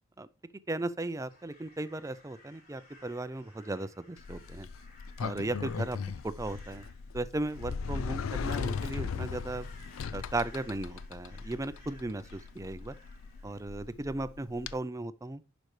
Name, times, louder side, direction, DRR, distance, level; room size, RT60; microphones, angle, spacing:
voice 1, 0.7-4.7 5.2-6.0 6.2-6.8 7.1-9.7 10.1-12.9 13.4-15.4, right 2 dB, 15° right, 0.4 m, -36 dB
Crow, 1.2-13.9, left 2 dB, 45° left, 3.7 m, -59 dB
Sliding door, 4.2-14.7, left 5 dB, 85° left, 0.4 m, -38 dB
11.0 x 5.1 x 3.2 m
head